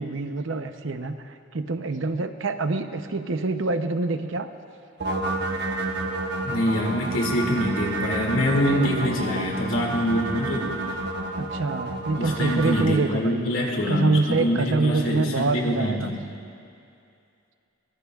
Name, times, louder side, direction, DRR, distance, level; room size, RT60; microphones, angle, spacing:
voice 1, 0.0-4.5 8.5-9.5 11.4-13.4 13.9-16.1, right 3 dB, 70° right, 8 dB, 0.8 m, -26 dB
sound 1, 5.0-12.9, right 2 dB, 55° right, 1.1 m, -30 dB
voice 2, 6.4-10.7 12.1-16.2, equal, 90° left, -1 dB, 2.4 m, -25 dB
23.0 x 22.0 x 2.4 m, 2.5 s
head